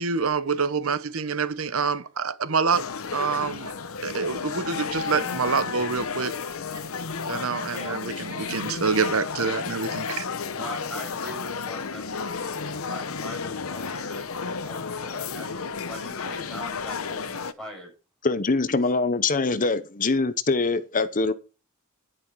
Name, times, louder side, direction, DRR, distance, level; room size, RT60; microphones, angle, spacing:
voice 1, 0.0-2.9 3.1-3.7 4.0-6.3 7.3-10.3, right 5 dB, 75° right, 1.0 m, -26 dB
sound 1, 2.7-17.5, left 5 dB, 80° left, 0.9 m, -32 dB
voice 2, 10.5-14.3 14.6-17.9, equal, 5° left, 7.4 m, -41 dB
voice 3, 18.2-21.3, left 3 dB, 40° left, 0.8 m, -23 dB
11.0 x 10.0 x 4.7 m
head